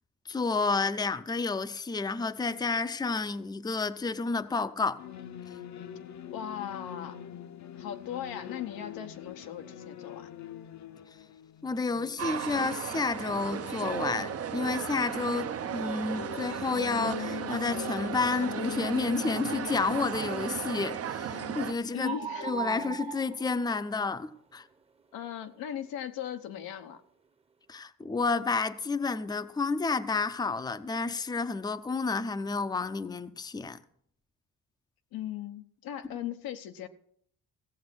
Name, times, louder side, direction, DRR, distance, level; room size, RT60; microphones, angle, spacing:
voice 1, 0.3-5.0 11.6-22.2 22.4-24.6 27.7-33.8, left 4 dB, 10° left, 0.5 m, -30 dB
sound 1, 5.0-23.0, left 9 dB, 55° left, 0.8 m, -43 dB
voice 2, 6.3-7.2 7.7-10.3 21.9-22.5 23.2-23.3 25.1-27.0 35.1-36.9, left 10 dB, 90° left, 1.0 m, -38 dB
sound 2, 12.2-21.7, right 9 dB, 45° right, 0.6 m, -35 dB
sound 3, 21.3-21.5 22.0-24.1, right 8 dB, 15° right, 0.9 m, -38 dB
15.5 x 7.3 x 6.1 m
cardioid pair, 95°, 35 cm